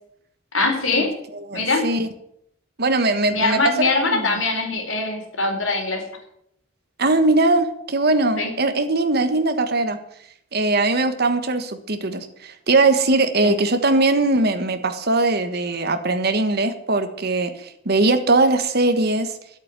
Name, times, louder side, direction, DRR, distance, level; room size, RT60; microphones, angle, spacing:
voice 1, 0.5-1.2 1.5-1.8 3.3-6.0 8.4-8.5 13.4-13.5, left 3 dB, 75° left, 2 dB, 4.2 m, -22 dB
voice 2, 1.5-2.1 2.8-4.4 7.0-10.0 10.5-19.3, right 2 dB, 50° right, 8 dB, 1.5 m, -20 dB
11.0 x 8.4 x 9.0 m, 0.73 s
head